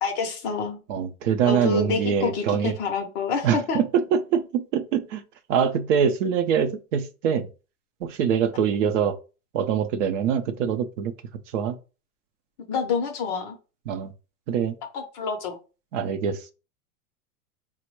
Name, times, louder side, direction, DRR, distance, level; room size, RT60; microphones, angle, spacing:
voice 1, 0.0-0.8 1.4-3.8 12.7-13.6 14.9-15.6, left 4 dB, 30° left, 0.5 m, -27 dB
voice 2, 0.9-2.7 3.4-5.2 5.5-7.5 8.0-9.2 9.5-11.1 11.5-11.8 13.9-14.1 14.5-14.7 15.9-16.5, right 7 dB, 55° right, 0.6 m, -24 dB
4.2 x 2.1 x 4.5 m
supercardioid pair, 150°, 46 cm